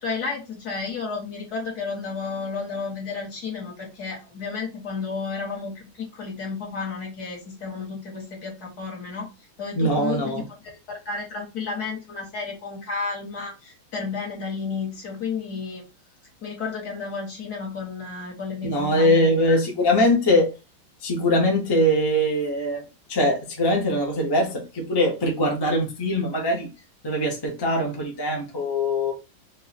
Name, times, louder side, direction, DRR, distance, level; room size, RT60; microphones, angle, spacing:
voice 1, 0.0-9.3 9.6-15.8 16.4-19.6, left 5 dB, 50° left, 1.8 m, -32 dB
voice 2, 9.7-10.4 18.6-20.5 21.0-22.8 23.1-26.7 27.0-29.1, left 1 dB, 35° left, 0.4 m, -22 dB
3.6 x 2.4 x 4.2 m
omnidirectional pair, 2.3 m